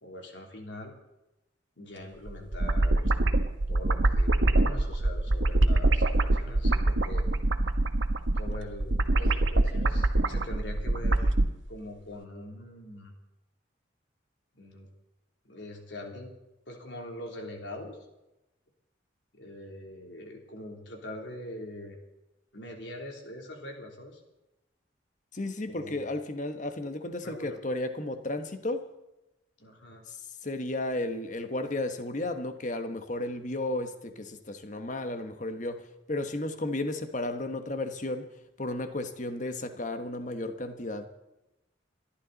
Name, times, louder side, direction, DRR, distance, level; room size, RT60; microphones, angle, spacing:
voice 1, 0.0-0.9 1.8-3.1 3.7-7.3 8.3-11.3 11.7-13.1 14.5-14.9 15.4-16.3 16.7-18.0 19.3-22.0 22.5-24.2 25.6-26.0 27.2-27.6 29.6-30.0, left 1 dB, 70° left, 3.3 m, -43 dB
sound 1, 2.3-11.5, right 2 dB, 90° right, 1.3 m, -24 dB
voice 2, 25.3-28.9 30.1-41.1, left 2 dB, 40° left, 1.3 m, -34 dB
29.5 x 12.0 x 4.1 m
head